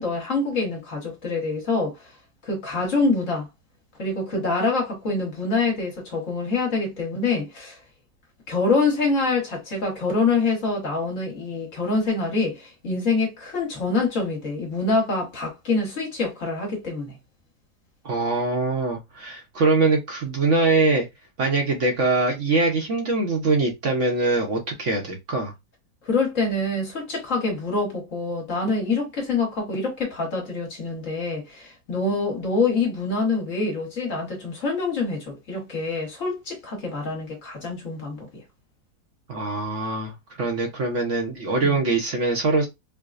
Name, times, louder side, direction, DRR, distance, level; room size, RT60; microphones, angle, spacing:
voice 1, 0.0-2.1 2.4-3.5 4.0-7.8 8.5-17.2 26.0-38.3 41.6-41.8, left 3 dB, 50° left, 1.6 m, -25 dB
voice 2, 18.0-21.1 21.4-25.5 39.3-42.7, right 3 dB, 55° right, 1.0 m, -23 dB
4.7 x 2.2 x 2.4 m
omnidirectional pair, 1.8 m